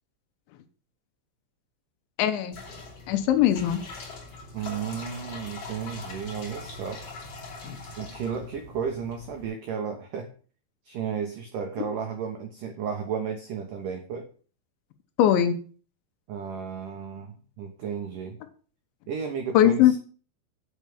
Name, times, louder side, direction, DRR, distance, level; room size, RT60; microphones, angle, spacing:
voice 1, 2.2-2.6 3.1-3.8 7.6-7.8 15.2-15.6 19.5-19.9, left 11 dB, 80° left, 8 dB, 3.2 m, -20 dB
sound 1, 2.5-9.5, left 3 dB, 40° left, 2.9 m, -42 dB
voice 2, 4.5-7.0 8.0-10.3 10.9-14.3 16.3-18.4 19.1-20.0, right 6 dB, 90° right, 4 dB, 1.8 m, -33 dB
8.3 x 6.0 x 6.8 m, 0.41 s
omnidirectional pair, 5.4 m